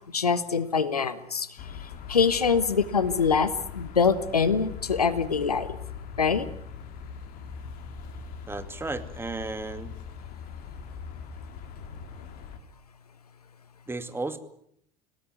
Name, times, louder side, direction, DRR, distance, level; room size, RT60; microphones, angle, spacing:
voice 1, 0.1-1.5 2.1-5.8 6.2-6.5, left 5 dB, 80° left, 15 dB, 1.3 m, -24 dB
sound 1, 1.6-12.6, left 6 dB, 50° left, 3.5 m, -41 dB
voice 2, 8.5-9.9 13.9-14.4, right 3 dB, 10° right, 9 dB, 2.4 m, -34 dB
27.0 x 18.0 x 9.2 m, 0.71 s
figure-of-eight pair, 70°, 19 cm